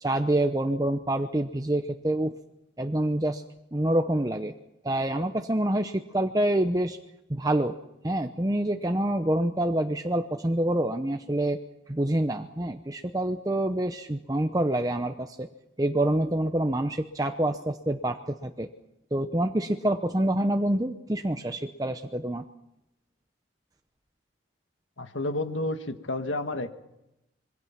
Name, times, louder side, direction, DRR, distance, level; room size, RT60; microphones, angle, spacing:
voice 1, 0.0-2.3 2.8-3.4 3.7-4.5 4.8-7.0 7.3-7.8 8.0-11.6 11.9-15.5 15.8-18.7 19.1-22.4, right 1 dB, 20° right, 6 dB, 0.8 m, -26 dB
voice 2, 25.0-26.7, left 2 dB, 85° left, 8 dB, 1.8 m, -30 dB
26.0 x 23.0 x 5.9 m, 0.90 s
head